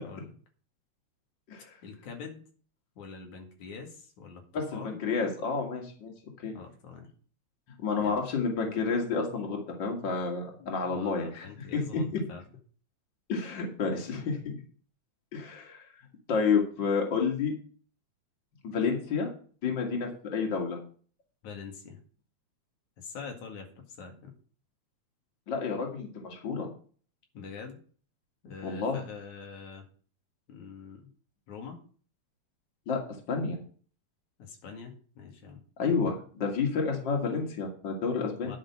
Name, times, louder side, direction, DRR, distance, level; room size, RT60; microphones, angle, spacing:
voice 1, 1.8-2.4 3.0-4.4 4.7-5.0 6.5-7.1 8.0-8.2 10.6-12.4 21.4-22.0 23.0-24.3 27.3-27.8 28.4-29.9 30.5-31.1 31.5-31.8 34.4-35.6 38.4-38.6, left 5 dB, 90° left, 3 dB, 3.4 m, -44 dB
voice 2, 4.5-6.1 6.4-6.5 7.8-11.5 11.7-12.2 13.3-14.6 15.3-15.8 16.3-17.5 18.6-19.3 19.6-20.8 25.5-26.7 28.6-29.0 32.9-33.0 33.3-33.6 35.8-38.5, left 5 dB, 40° left, 1 dB, 2.8 m, -30 dB
10.5 x 6.6 x 6.1 m, 0.43 s
omnidirectional pair, 3.3 m